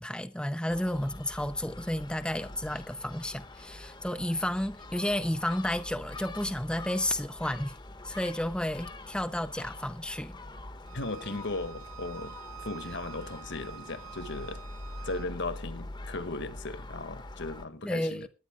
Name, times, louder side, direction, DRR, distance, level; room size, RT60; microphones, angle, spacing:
voice 1, 0.0-7.7 8.0-10.3 17.8-18.3, left 1 dB, 5° left, 0.6 m, -32 dB
Gull seagull, 0.7-17.7, left 2 dB, 20° left, 1.0 m, -44 dB
Bowed string instrument, 10.8-15.3, right 9 dB, 80° right, 2.8 m, -48 dB
voice 2, 10.9-12.3 12.6-14.6 15.0-18.3, left 2 dB, 55° left, 1.6 m, -37 dB
20.5 x 9.6 x 3.6 m
head